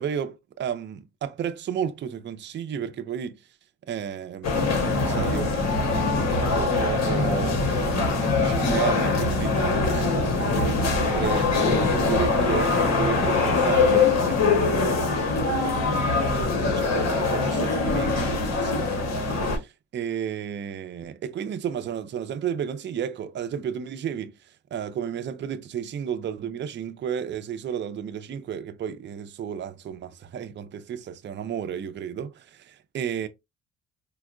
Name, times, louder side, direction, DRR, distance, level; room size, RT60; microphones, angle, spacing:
voice 1, 0.0-3.4 3.9-5.8 6.3-15.0 15.8-24.3 24.7-33.3, right 8 dB, 40° right, 0.4 m, -33 dB
sound 1, 4.4-19.6, left 3 dB, 60° left, 1.1 m, -23 dB
4.3 x 2.0 x 2.4 m
cardioid pair, 90°, 30 cm